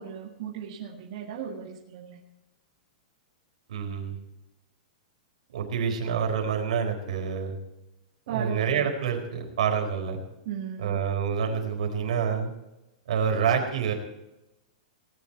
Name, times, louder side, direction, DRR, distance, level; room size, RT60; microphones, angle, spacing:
voice 1, 0.0-2.2 8.3-8.9 10.5-11.0, right 7 dB, 40° right, -3 dB, 2.0 m, -36 dB
voice 2, 3.7-4.1 5.5-7.6 8.3-10.2 10.8-12.5 13.1-13.9, right 7 dB, 65° right, 2 dB, 4.2 m, -27 dB
19.0 x 10.5 x 4.6 m, 0.94 s
supercardioid pair, 180°, 4 cm